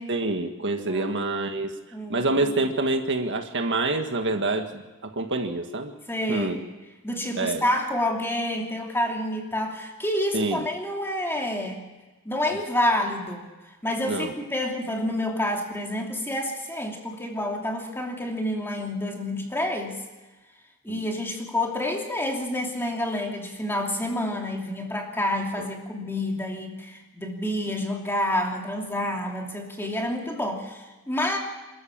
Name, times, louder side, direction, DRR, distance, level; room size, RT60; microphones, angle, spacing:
voice 1, 0.1-1.7 2.1-4.8 5.1-5.9 6.3-6.6 7.4-7.6 10.3-10.6 14.1-14.3 20.9-21.0 25.6-25.7, right 2 dB, 55° right, 5 dB, 1.6 m, -26 dB
voice 2, 0.9-1.2 1.9-2.3 6.1-6.7 7.0-11.8 12.2-13.5 13.8-20.0 20.8-31.4, left 1 dB, 10° left, 1 dB, 2.8 m, -28 dB
26.5 x 13.5 x 7.4 m, 1.2 s
head